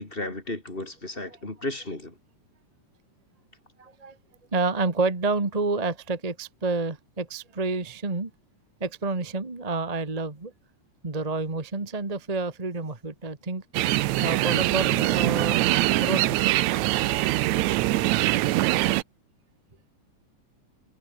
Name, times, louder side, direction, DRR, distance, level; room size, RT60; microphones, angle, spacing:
voice 1, 0.0-2.1, left 2 dB, 15° left, 3.0 m, -34 dB
voice 2, 3.8-4.2 4.5-8.3 8.8-10.5 11.0-13.6 14.2-15.6 16.0-16.5, right 3 dB, 15° right, 1.4 m, -29 dB
sound 1, 13.7-19.0, right 17 dB, 75° right, 1.9 m, -23 dB
omnidirectional pair, 3.7 m